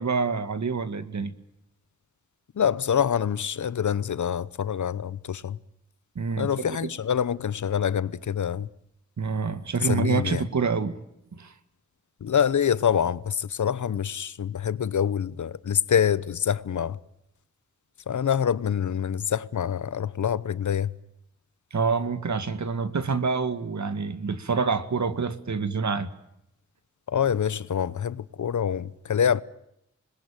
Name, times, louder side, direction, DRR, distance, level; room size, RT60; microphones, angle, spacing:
voice 1, 0.0-1.3 6.2-6.8 9.2-11.0 11.3-11.5 21.7-26.1, right 5 dB, 75° right, 2.1 m, -27 dB
voice 2, 2.6-5.6 6.4-8.7 9.9-10.4 12.2-17.0 18.1-20.9 27.1-29.4, left 8 dB, 85° left, 0.9 m, -26 dB
26.0 x 21.0 x 9.0 m
cardioid pair, 50°, 29 cm